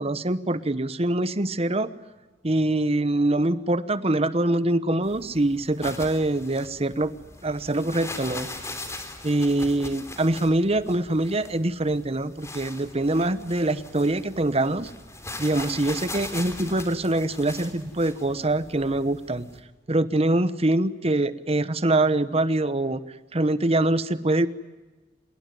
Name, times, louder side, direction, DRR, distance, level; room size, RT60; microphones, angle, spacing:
voice 1, 0.0-1.9 2.4-7.1 7.4-8.5 9.2-14.9 15.4-19.5 19.9-23.0 23.3-24.5, right 2 dB, 30° right, 14 dB, 1.1 m, -24 dB
sound 1, 5.0-19.6, left 2 dB, 15° left, 3.3 m, -40 dB
26.5 x 22.0 x 9.3 m, 1.2 s
head